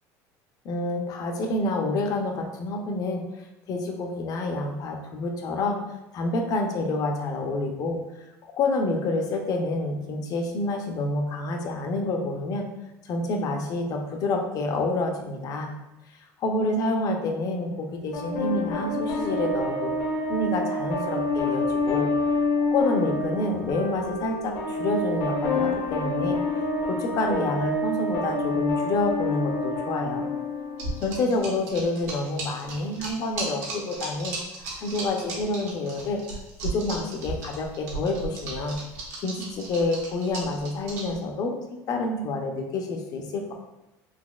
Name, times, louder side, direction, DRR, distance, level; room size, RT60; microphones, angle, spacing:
voice 1, 0.6-5.8 6.1-8.0 8.4-12.7 13.0-15.7 16.4-19.9 20.3-22.1 22.7-26.4 26.9-30.3 31.0-34.4 34.8-36.2 36.6-38.8 39.2-41.6 41.9-43.5, left 2 dB, 45° left, 3 dB, 0.6 m, -28 dB
sound 1, 18.1-31.1, left 2 dB, 70° left, 0.9 m, -27 dB
sound 2, 30.8-41.2, right 3 dB, 75° right, 1.3 m, -35 dB
4.1 x 2.8 x 2.3 m, 0.94 s
supercardioid pair, 125°, 8 cm